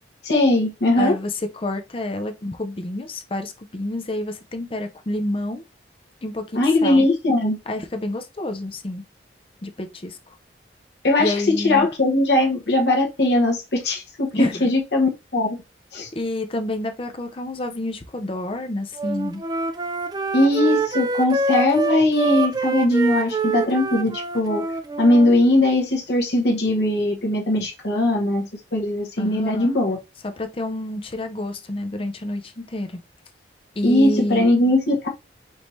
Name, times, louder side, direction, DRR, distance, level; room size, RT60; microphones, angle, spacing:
voice 1, 0.2-1.1 6.5-7.6 11.0-15.6 15.9-16.1 20.3-24.6 25.0-30.0 33.8-35.1, left 1 dB, 65° left, 1.1 m, -20 dB
voice 2, 1.0-5.6 6.2-7.1 7.7-9.0 9.6-10.3 11.2-11.9 14.3-14.7 16.1-19.4 29.2-29.7 30.2-33.0 33.8-34.5, left 1 dB, 30° left, 0.6 m, -28 dB
Wind instrument woodwind instrument, 19.0-25.3, right 3 dB, 20° right, 0.5 m, -25 dB
5.2 x 2.8 x 3.1 m
head